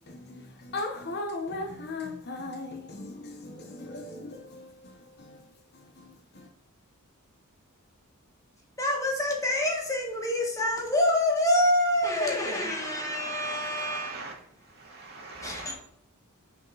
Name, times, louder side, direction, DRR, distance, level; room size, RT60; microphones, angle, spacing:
voice 1, 0.1-5.4 5.7-6.5, left 2 dB, 50° left, 1.0 m, -38 dB
voice 2, 8.8-14.4 15.4-15.7, left 1 dB, 15° left, 1.5 m, -27 dB
voice 3, 12.4-14.3 14.6-15.7, right 3 dB, 45° right, 2.3 m, -41 dB
6.4 x 5.0 x 4.0 m
head